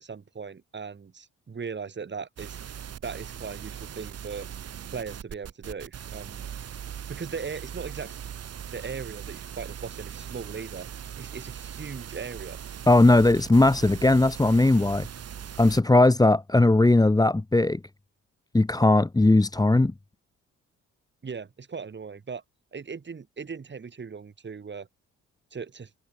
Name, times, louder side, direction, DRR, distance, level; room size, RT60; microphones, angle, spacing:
voice 1, 0.0-2.6 3.0-4.5 4.9-6.5 7.1-8.2 8.7-10.9 11.2-12.6 21.2-22.4 22.7-24.9 25.5-25.9, right 5 dB, 35° right, 6.0 m, -38 dB
sound 1, 2.4-15.8, right 9 dB, 55° right, 2.5 m, -40 dB
voice 2, 12.9-15.1 15.6-17.8 18.5-19.9, left 2 dB, 10° left, 1.7 m, -19 dB
cardioid pair, 90°, 30 cm